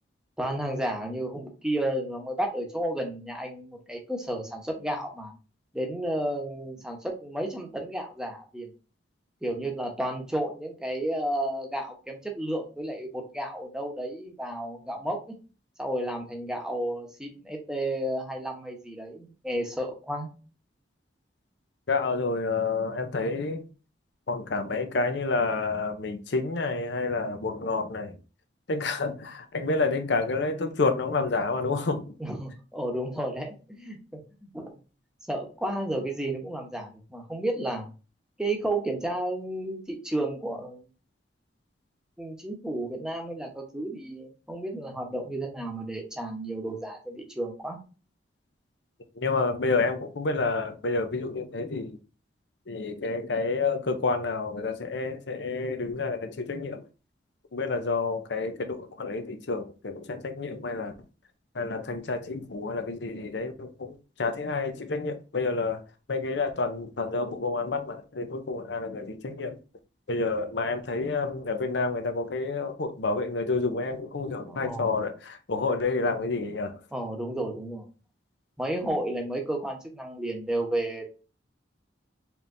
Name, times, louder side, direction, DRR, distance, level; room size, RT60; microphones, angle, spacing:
voice 1, 0.4-5.3 5.7-8.7 9.4-15.3 15.8-20.3 32.2-34.0 34.4-34.7 35.3-37.9 38.4-40.8 42.2-47.8 74.5-75.0 76.9-77.9 78.6-81.1, right 1 dB, 5° right, 0.9 m, -32 dB
voice 2, 21.9-23.6 24.3-28.2 28.7-32.1 49.2-52.0 52.7-56.9 57.5-60.9 61.5-65.8 66.1-69.6 70.1-76.8, left 3 dB, 70° left, 0.7 m, -29 dB
4.5 x 3.5 x 2.6 m
head